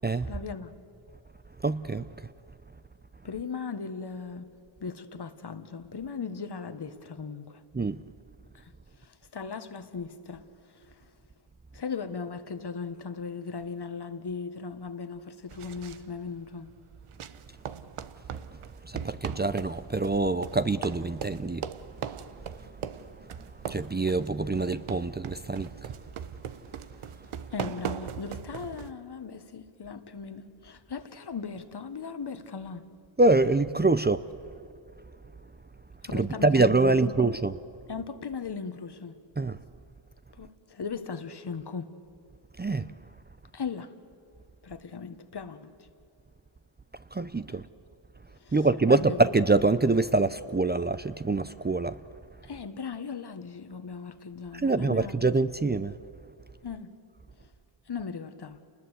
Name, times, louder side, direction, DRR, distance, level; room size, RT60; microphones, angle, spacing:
voice 1, 0.2-0.7 3.2-4.5 4.8-7.6 8.5-8.7 9.0-11.1 11.7-16.7 27.5-32.9 36.0-37.3 37.9-39.2 40.3-42.0 43.5-43.9 44.6-45.9 47.5-47.6 48.4-48.6 48.9-49.2 52.4-55.1 56.6-56.9 57.9-58.6, left 5 dB, 50° left, 1.6 m, -38 dB
voice 2, 1.6-2.3 7.7-8.0 18.3-18.4 18.8-21.7 22.4-22.7 23.2-26.0 33.2-34.2 36.1-37.5 39.4-39.6 42.6-42.9 47.1-47.7 48.5-52.0 54.6-56.0, right 3 dB, 20° right, 0.7 m, -25 dB
sound 1, 15.5-28.9, right 8 dB, 80° right, 1.0 m, -40 dB
28.5 x 20.5 x 8.3 m
cardioid pair, 60°, 50 cm